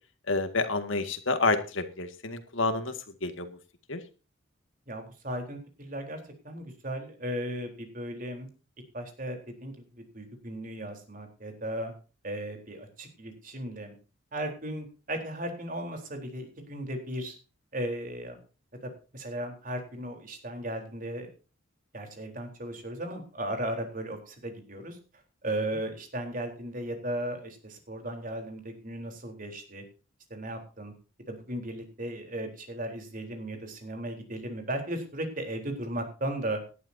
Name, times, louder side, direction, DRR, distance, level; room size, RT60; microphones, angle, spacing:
voice 1, 0.3-2.9 3.2-3.5 3.9-4.0, left 3 dB, 70° left, 8 dB, 2.0 m, -28 dB
voice 2, 4.9-6.2 6.4-8.5 8.9-11.9 12.2-14.0 14.3-17.4 17.7-18.4 18.8-21.3 21.9-25.0 25.4-29.8 30.3-30.9 31.3-36.6, right 1 dB, 40° right, 4 dB, 3.9 m, -36 dB
18.0 x 11.5 x 2.8 m, 0.34 s
head